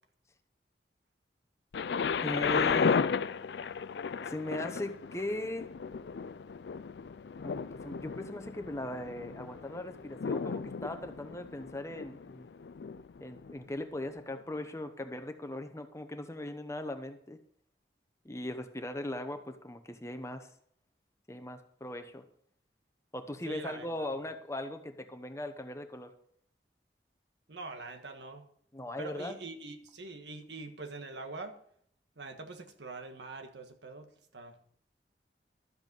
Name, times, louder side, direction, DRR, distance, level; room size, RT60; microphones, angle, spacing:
Thunder, 1.7-13.6 14.3-14.4, left 6 dB, 75° left, 0.4 m, -34 dB
voice 1, 2.2-3.1 4.3-5.7 7.4-12.5 13.2-17.4 18.2-20.5 21.3-22.2 23.1-26.1 28.7-29.4, left 1 dB, 15° left, 7 dB, 0.9 m, -39 dB
voice 2, 23.4-24.1 27.5-28.5 29.0-31.5 32.2-34.1 34.3-34.6, right 3 dB, 85° right, 5 dB, 1.5 m, -44 dB
12.5 x 8.0 x 5.4 m, 0.65 s
head